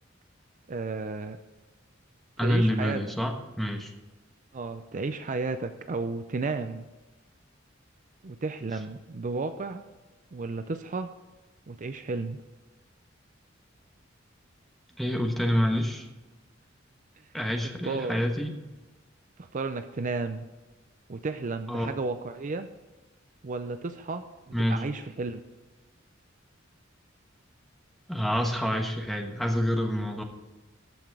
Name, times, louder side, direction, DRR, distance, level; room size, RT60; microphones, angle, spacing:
voice 1, 0.7-1.4 2.4-3.0 4.5-6.9 8.2-9.8 10.3-11.1 11.7-12.4 17.8-18.2 19.4-20.5 21.1-22.7 23.4-25.4, right 3 dB, 40° right, 9 dB, 0.5 m, -33 dB
voice 2, 2.4-3.9 15.0-16.1 17.3-18.6 21.7-21.9 24.5-24.8 28.1-30.2, equal, ahead, 3 dB, 1.2 m, -27 dB
14.0 x 5.9 x 4.8 m, 1.2 s
head